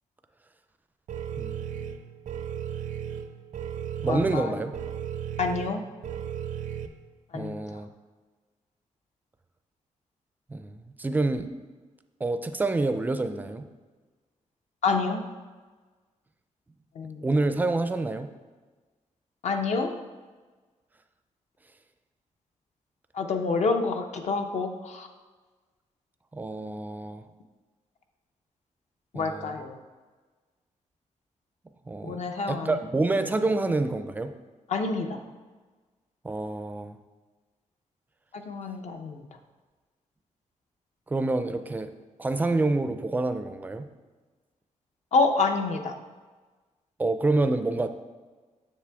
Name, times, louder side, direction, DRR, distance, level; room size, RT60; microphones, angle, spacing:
sound 1, 1.1-6.9, right 9 dB, 90° right, 0.6 m, -35 dB
voice 1, 1.4-2.0 4.0-4.7 7.3-7.9 10.5-11.5 12.2-13.7 17.2-18.3 26.3-27.3 29.1-29.7 31.9-32.2 32.5-34.3 36.2-37.0 41.1-41.9 42.2-43.9 47.0-47.9, right 2 dB, 15° right, 9 dB, 0.4 m, -27 dB
voice 2, 4.1-4.6 5.4-5.8 7.3-7.6 14.8-15.2 17.0-17.2 19.4-19.9 23.1-25.1 29.1-29.8 32.0-32.8 34.7-35.2 38.3-39.2 45.1-45.9, left 4 dB, 65° left, 5 dB, 0.7 m, -27 dB
7.4 x 6.9 x 3.5 m, 1.3 s
wide cardioid pair, 175°, 13 cm